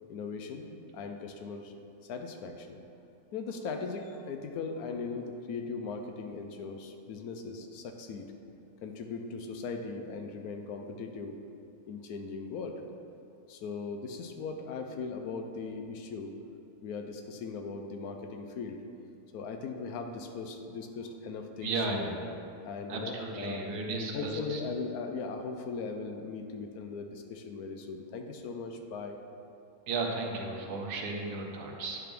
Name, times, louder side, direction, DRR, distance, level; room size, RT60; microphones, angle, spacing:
voice 1, 0.1-0.6 0.9-1.7 2.0-2.8 3.3-8.3 8.8-11.4 11.9-12.8 13.5-16.4 16.8-18.8 19.3-22.2 22.6-23.7 24.1-29.2, left 4 dB, 75° left, 5 dB, 1.1 m, -39 dB
voice 2, 21.6-22.2 22.9-24.6 29.9-32.0, right 3 dB, 85° right, 1 dB, 1.4 m, -34 dB
9.3 x 3.5 x 5.9 m, 2.6 s
omnidirectional pair, 1.6 m